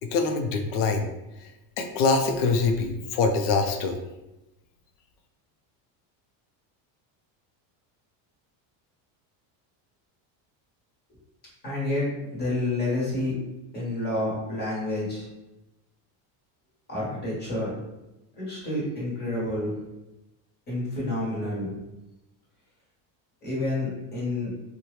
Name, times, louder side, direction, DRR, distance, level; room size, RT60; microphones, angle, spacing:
voice 1, 0.0-1.1 1.4-1.5 1.8-4.0, left 4 dB, 80° left, 5 dB, 0.6 m, -24 dB
voice 2, 11.6-12.1 12.3-13.3 13.7-15.3 16.9-17.7 18.3-19.7 20.7-21.7 23.4-24.5, left 2 dB, 20° left, -6 dB, 1.1 m, -29 dB
2.7 x 2.3 x 3.1 m, 0.95 s
cardioid pair, 170°, 46 cm